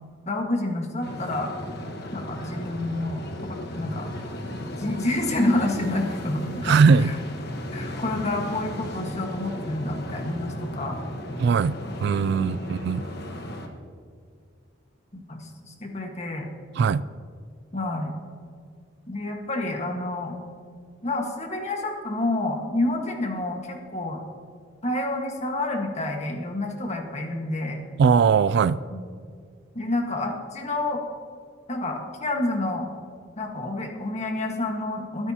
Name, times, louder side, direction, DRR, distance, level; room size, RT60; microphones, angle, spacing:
voice 1, 0.2-1.6 2.1-3.2 3.7-4.1 4.8-7.2 7.7-11.0 12.4-12.7 15.1-16.5 17.7-18.1 19.1-20.3 21.0-24.2 24.8-27.8 28.9-29.1 29.7-31.0 31.7-32.9 33.4-35.3, left 2 dB, 35° left, 2 dB, 1.6 m, -28 dB
sound 1, 1.0-13.7, left 1 dB, 55° left, 1.3 m, -35 dB
voice 2, 6.6-7.1 11.4-13.0 16.8-17.0 28.0-28.8, right 5 dB, 60° right, 17 dB, 0.3 m, -20 dB
23.0 x 8.9 x 2.9 m, 2.1 s
head